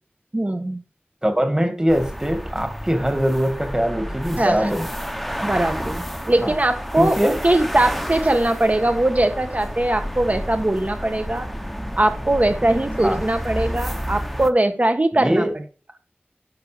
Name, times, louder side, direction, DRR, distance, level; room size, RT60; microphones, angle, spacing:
voice 1, 0.3-0.8 4.4-4.7 5.4-11.5 12.0-15.5, right 1 dB, 40° right, 7 dB, 1.6 m, -21 dB
voice 2, 1.2-4.9 6.4-6.6 7.0-7.4 13.0-13.2 15.1-15.5, equal, 20° right, 7 dB, 2.3 m, -22 dB
sound 1, 1.9-14.5, equal, ahead, 1.1 m, -30 dB
10.5 x 6.8 x 5.2 m, 0.39 s
wide cardioid pair, 55°, 4 cm